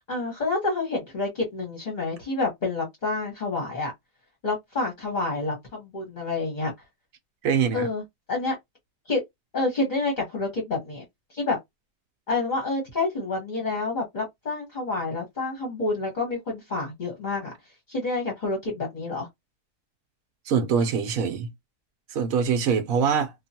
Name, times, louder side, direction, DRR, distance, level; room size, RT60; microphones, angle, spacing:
voice 1, 0.1-3.9 4.4-6.7 7.7-8.0 8.3-8.5 9.1-9.2 9.5-11.0 11.3-11.6 12.3-17.5 17.9-19.3, left 3 dB, 35° left, 0.9 m, -28 dB
voice 2, 7.4-7.9 20.5-21.5 22.1-23.3, right 6 dB, 65° right, 1.0 m, -23 dB
2.9 x 2.3 x 2.7 m
omnidirectional pair, 1.7 m